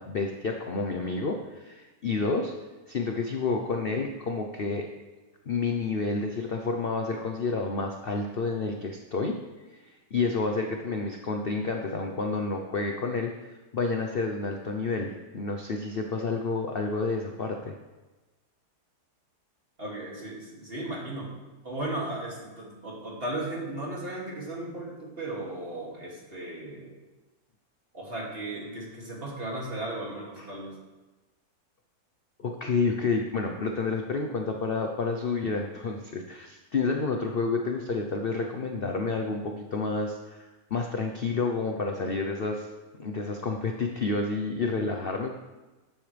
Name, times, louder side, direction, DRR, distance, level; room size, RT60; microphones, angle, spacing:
voice 1, 0.0-2.5 2.9-4.9 5.5-9.4 10.1-17.7 30.4-30.5 32.4-42.7 43.0-45.3, left 3 dB, 45° left, 3 dB, 0.8 m, -29 dB
voice 2, 19.8-21.4 21.6-26.9 27.9-30.8, right 1 dB, 35° right, -4 dB, 2.8 m, -36 dB
13.0 x 10.5 x 3.4 m, 1.2 s
omnidirectional pair, 1.8 m